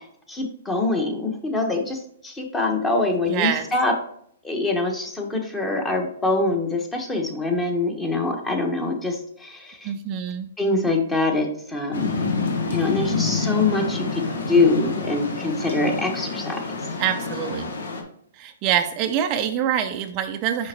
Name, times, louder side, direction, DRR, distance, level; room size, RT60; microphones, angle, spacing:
voice 1, 0.3-3.9 4.4-9.9 10.6-12.2 12.7-16.6, left 2 dB, 10° left, 3 dB, 1.2 m, -24 dB
voice 2, 3.3-3.6 9.8-10.5 17.0-17.7 18.4-20.7, right 9 dB, 35° right, 6 dB, 0.5 m, -25 dB
sound 1, 11.9-18.0, left 4 dB, 75° left, 1.3 m, -27 dB
6.3 x 5.2 x 2.9 m, 0.67 s
hypercardioid pair, 135°, 0 cm